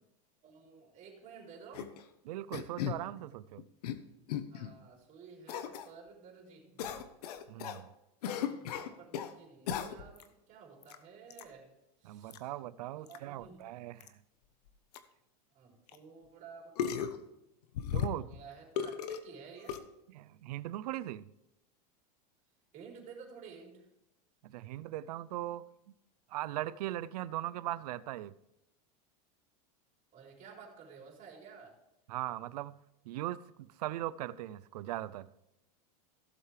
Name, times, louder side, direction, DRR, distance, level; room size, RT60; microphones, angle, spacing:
voice 1, 0.4-1.9 4.5-7.1 8.2-11.7 12.0-12.5 12.9-13.6 15.5-17.0 18.1-19.8 22.7-23.9 30.1-31.8, right 5 dB, 40° right, 4.2 m, -53 dB
sound 1, 1.7-2.0 2.5-3.0 3.6-4.0 4.3-4.7 5.5-5.9 6.8-7.8 8.2-9.3 9.7-10.2 10.8-11.0 11.3-11.4 12.3-12.4 13.1-13.2 13.4-13.5 14.0-14.1 14.7-14.8 14.9-15.0 15.9-16.0 16.8-17.2 17.7-18.4 18.8-19.2 19.7-19.8, left 9 dB, 80° left, 1.1 m, -36 dB
voice 2, 2.2-3.7 7.5-7.9 12.0-14.2 17.9-18.3 20.1-21.2 24.4-25.7 26.3-28.3 32.1-32.8 33.0-35.3, right 14 dB, 80° right, 0.6 m, -39 dB
16.5 x 7.4 x 3.3 m
supercardioid pair, 135°, 20 cm